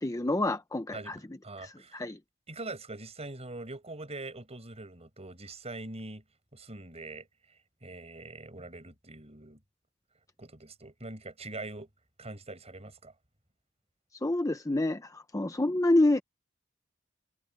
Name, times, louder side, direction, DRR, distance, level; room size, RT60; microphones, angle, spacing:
voice 1, 0.0-1.2 1.6-2.2 14.2-16.2, left 2 dB, 15° left, 0.8 m, -27 dB
voice 2, 0.9-2.0 2.5-6.2 6.5-7.3 7.8-9.6 10.4-11.9 12.2-13.1, right 2 dB, 30° right, 6.2 m, -43 dB
head